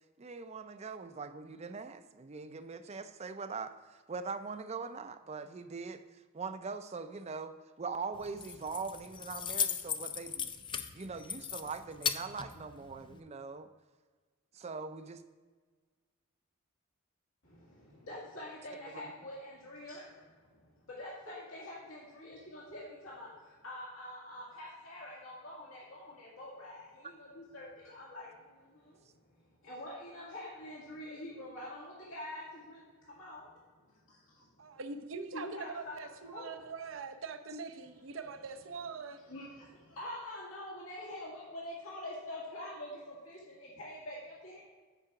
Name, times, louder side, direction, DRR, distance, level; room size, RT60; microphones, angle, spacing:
voice 1, 0.2-10.5 10.9-13.7 14.5-15.2 27.0-27.1, right 4 dB, 30° right, 0.5 m, -42 dB
Keys jangling, 8.2-13.2, left 7 dB, 25° left, 0.4 m, -38 dB
voice 2, 17.4-29.0 29.6-33.5 35.3-35.9 36.2-36.5 39.3-44.6, left 1 dB, 90° left, 2.1 m, -46 dB
voice 3, 34.6-39.2, right 4 dB, 75° right, 0.7 m, -43 dB
9.2 x 4.8 x 5.8 m
head